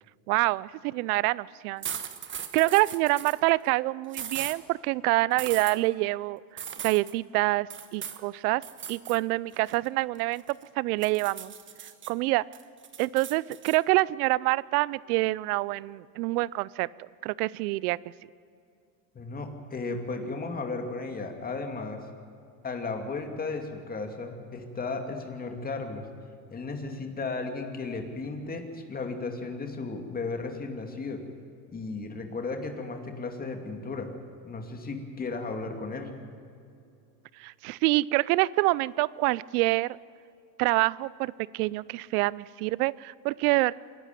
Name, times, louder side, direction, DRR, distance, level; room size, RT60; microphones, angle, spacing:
voice 1, 0.3-1.9 2.5-8.6 8.9-11.5 12.1-12.4 13.0-16.9 17.2-18.0 37.4-40.0 40.6-43.7, right 20 dB, 75° right, 22 dB, 0.7 m, -26 dB
sound 1, 1.8-3.4 4.1-4.6 5.4-5.8 6.6-7.1 7.7-8.2 8.6-9.2 9.5-10.6 11.0-12.1 12.5-13.8, right 8 dB, 25° right, 1.3 m, -38 dB
voice 2, 19.1-22.0 22.6-26.0 26.5-31.2 31.7-34.1 34.4-36.1, left 3 dB, 20° left, 4 dB, 2.6 m, -35 dB
27.0 x 12.0 x 9.3 m, 2.5 s
supercardioid pair, 135°, 46 cm